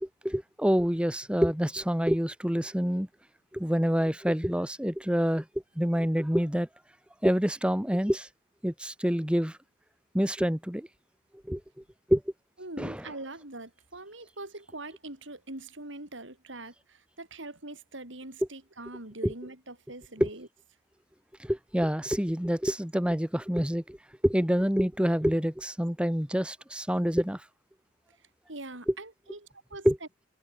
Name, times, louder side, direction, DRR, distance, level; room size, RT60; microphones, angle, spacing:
voice 1, 0.0-3.1 3.5-5.4 5.8-6.7 7.2-8.3 8.6-9.6 10.1-10.9 11.5-11.6 12.1-12.2 12.8-13.0 20.2-20.3 21.4-24.0 24.2-27.4 28.9-29.0 29.8-30.0, equal, 5° right, 1.3 m, -27 dB
voice 2, 12.6-20.5 28.5-29.4 29.7-29.9, right 2 dB, 75° right, 6.3 m, -43 dB
head